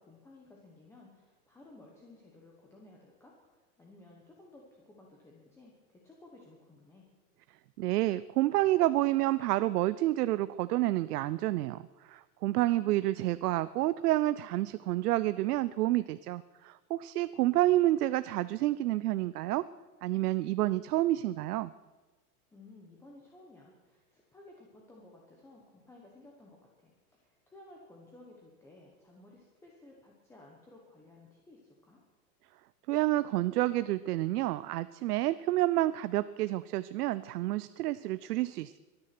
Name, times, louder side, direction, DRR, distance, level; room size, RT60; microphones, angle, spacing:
voice 1, 0.0-7.0 12.5-13.1 22.5-32.0, left 2 dB, 5° left, -2 dB, 1.1 m, -56 dB
voice 2, 7.8-19.7 20.0-21.7 32.9-38.8, right 16 dB, 85° right, 15 dB, 0.6 m, -29 dB
24.0 x 9.7 x 6.0 m, 1.2 s
supercardioid pair, 170°, 45 cm